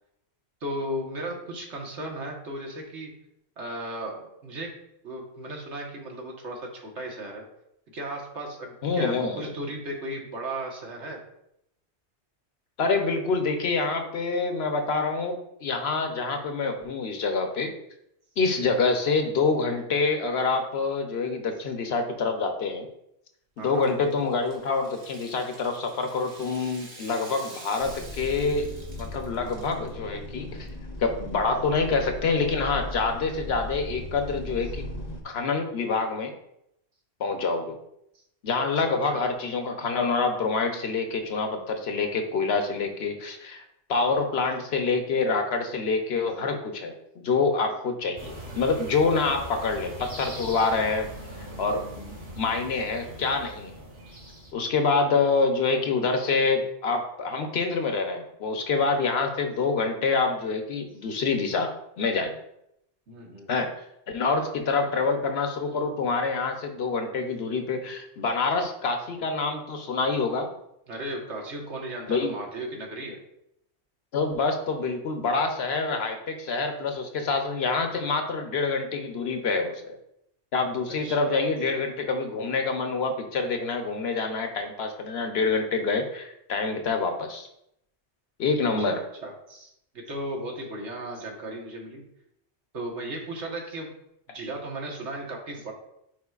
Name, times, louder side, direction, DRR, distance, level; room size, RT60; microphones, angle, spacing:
voice 1, 0.6-3.1 3.6-7.5 7.9-11.2 23.6-23.9 38.7-39.2 54.3-54.4 63.1-63.5 70.9-73.2 80.9-81.4 88.9-92.0 92.7-93.9 94.3-95.7, right 1 dB, 85° right, 0 dB, 1.6 m, -36 dB
voice 2, 8.8-9.4 12.8-17.7 18.4-22.9 23.6-28.6 29.0-30.7 31.0-34.8 35.2-36.3 37.2-37.8 38.4-43.6 43.9-46.9 47.2-51.1 51.6-53.7 54.5-61.7 62.0-62.3 63.5-63.7 64.1-70.5 72.1-72.3 74.1-80.0 80.5-87.5 88.4-89.0, left 4 dB, 65° left, 5 dB, 1.0 m, -26 dB
Rattle (instrument), 23.7-29.9, right 2 dB, 65° right, 1.5 m, -47 dB
sound 1, 27.8-35.2, left 1 dB, 40° left, 0.8 m, -38 dB
sound 2, 48.1-54.5, equal, 50° right, 2.0 m, -41 dB
9.6 x 4.4 x 2.4 m, 0.79 s
omnidirectional pair, 1.1 m